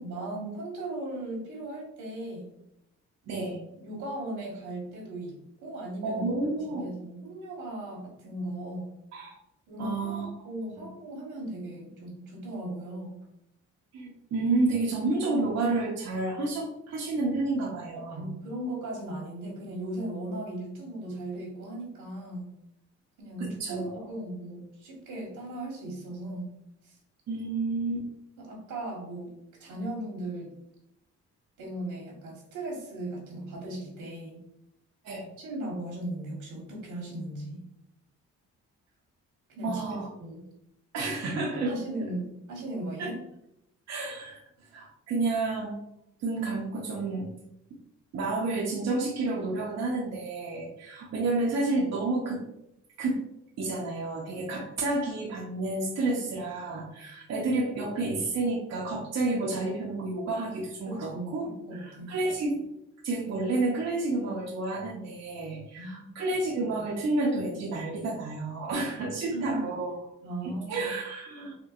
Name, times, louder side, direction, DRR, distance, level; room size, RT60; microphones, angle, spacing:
voice 1, 0.0-2.5 3.2-3.5 3.8-6.3 6.8-8.9 9.7-13.2 17.9-22.5 23.2-26.5 26.8-27.0 28.4-30.5 31.6-34.4 35.4-37.6 39.5-40.4 41.6-43.2 60.9-62.1 65.8-66.2 69.3-69.6 70.2-70.9, right 1 dB, 85° right, -2 dB, 1.5 m, -37 dB
voice 2, 3.3-3.6 6.0-6.8 9.1-9.4 9.8-10.3 10.7-10.9 13.9-18.3 23.4-24.1 27.3-28.1 35.0-35.3 39.6-40.1 40.9-41.7 43.0-43.1 43.9-44.4 44.7-45.8 46.2-47.3 48.1-52.4 53.0-53.2 53.6-61.5 61.7-62.6 63.0-69.9 70.4-71.5, right 2 dB, 60° right, -3 dB, 0.7 m, -30 dB
4.3 x 2.2 x 2.4 m, 0.80 s
cardioid pair, 90°, 30 cm